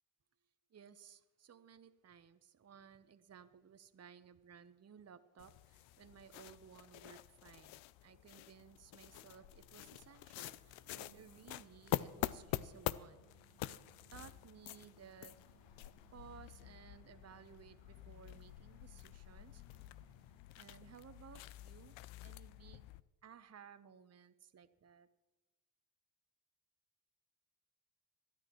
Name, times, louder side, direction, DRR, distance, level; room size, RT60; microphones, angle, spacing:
voice 1, 0.7-13.2 13.6-13.8 14.1-15.4 15.8-19.6 20.5-22.9 23.2-25.1, right 7 dB, 35° right, 10 dB, 0.9 m, -59 dB
sound 1, 5.4-23.0, left 15 dB, 75° left, 0.5 m, -47 dB
sound 2, 10.5-20.5, right 8 dB, 85° right, 1.8 m, -69 dB
26.0 x 9.8 x 3.0 m, 1.1 s
hypercardioid pair, 50°, 47 cm